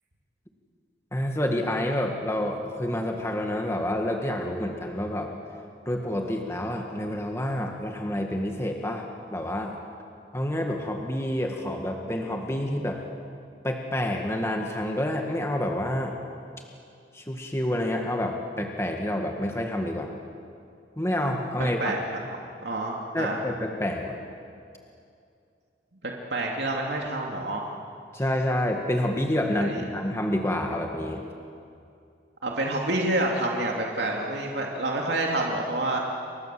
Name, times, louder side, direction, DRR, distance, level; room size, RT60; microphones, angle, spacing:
voice 1, 1.1-5.3 5.9-9.1 9.3-9.7 10.3-13.0 13.6-16.2 17.1-20.1 21.0-22.0 23.1-24.2 28.1-31.2, left 1 dB, 15° left, 2 dB, 1.8 m, -28 dB
voice 2, 21.6-22.4 22.6-23.4 26.0-27.7 29.5-29.8 32.4-36.0, right 2 dB, 80° right, -1 dB, 2.8 m, -28 dB
29.5 x 24.5 x 7.7 m, 2.5 s
head